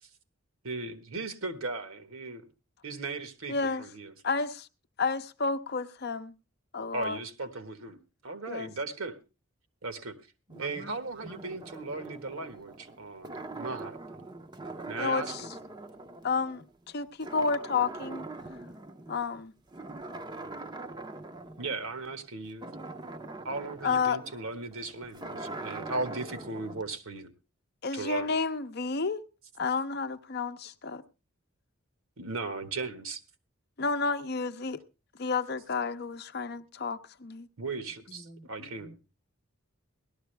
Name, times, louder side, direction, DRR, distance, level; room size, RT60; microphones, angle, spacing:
voice 1, 0.6-2.4 2.8-4.1 6.9-9.2 9.8-10.2 10.6-14.0 14.9-15.5 21.6-22.7 23.4-27.3 27.9-28.4 32.2-33.2 37.6-38.9, right 3 dB, 75° right, 1.5 m, -37 dB
voice 2, 3.5-3.8 4.2-4.7 5.0-6.3 6.7-7.2 8.5-8.7 15.0-15.4 16.2-18.3 19.1-19.5 23.8-24.2 27.8-29.2 29.6-31.0 33.8-34.8 35.2-37.5, left 4 dB, 50° left, 0.6 m, -31 dB
sound 1, 10.5-16.9 17.2-19.3 19.7-26.8, right 2 dB, 20° right, 0.6 m, -43 dB
voice 3, 10.5-11.4 38.1-39.0, right 1 dB, 55° right, 1.2 m, -49 dB
17.5 x 12.5 x 3.3 m
head